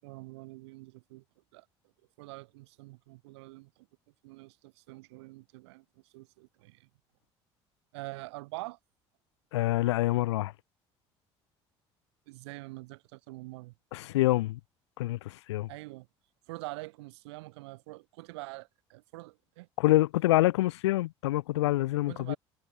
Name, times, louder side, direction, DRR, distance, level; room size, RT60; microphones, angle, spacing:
voice 1, 0.0-1.2 1.5-1.7 2.2-3.9 4.2-5.8 6.1-6.9 7.9-8.8 12.3-13.7 15.7-16.1 16.5-19.7 22.1-22.4, right 22 dB, 75° right, 2.2 m, -45 dB
voice 2, 9.5-10.5 13.9-14.6 15.0-15.7 19.8-22.3, left 17 dB, 80° left, 0.4 m, -26 dB
hypercardioid pair, 55°, 14 cm